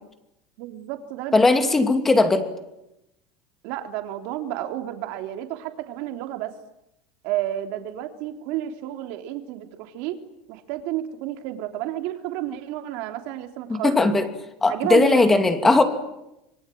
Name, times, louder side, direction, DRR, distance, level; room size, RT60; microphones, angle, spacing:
voice 1, 0.6-1.7 3.6-6.5 7.2-10.2 10.5-14.1 14.7-15.3, right 13 dB, 55° right, 6 dB, 3.4 m, -31 dB
voice 2, 1.3-2.5 13.7-14.3 14.6-15.8, left 3 dB, 10° left, 8 dB, 2.6 m, -18 dB
26.0 x 23.5 x 9.3 m, 0.88 s
supercardioid pair, 160°, 2 cm